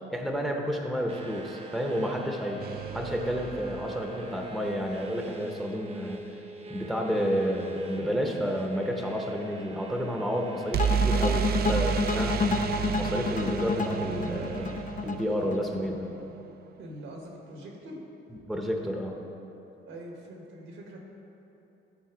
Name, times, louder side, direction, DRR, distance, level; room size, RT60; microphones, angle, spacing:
voice 1, 0.1-2.6 2.9-6.3 6.7-12.7 12.9-16.1 18.5-19.2, equal, ahead, 1 dB, 0.9 m, -30 dB
sound 1, 1.1-14.8, right 2 dB, 30° right, 0.9 m, -43 dB
sound 2, 2.6-4.6 10.7-16.5, right 7 dB, 55° right, 0.4 m, -31 dB
sound 3, 10.8-15.9, left 4 dB, 40° left, 0.5 m, -30 dB
voice 2, 16.8-18.0 19.8-21.0, right 1 dB, 80° right, 0 dB, 1.6 m, -43 dB
12.5 x 4.2 x 5.0 m, 2.9 s
cardioid pair, 90°, 20 cm